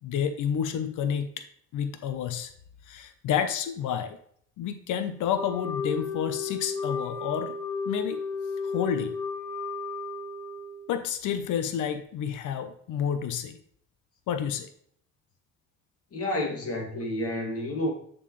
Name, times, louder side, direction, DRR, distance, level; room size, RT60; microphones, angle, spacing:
voice 1, 0.0-1.4 1.7-2.5 2.9-4.2 4.6-7.6 7.8-8.2 8.6-9.1 10.9-13.6 14.3-14.7, left 8 dB, 85° left, 0.9 m, -30 dB
Wind instrument woodwind instrument, 5.3-11.0, left 4 dB, 10° left, 2.3 m, -33 dB
voice 2, 16.1-17.9, left 1 dB, 50° left, 2.5 m, -30 dB
7.4 x 6.5 x 3.2 m
cardioid pair, 90°, 30 cm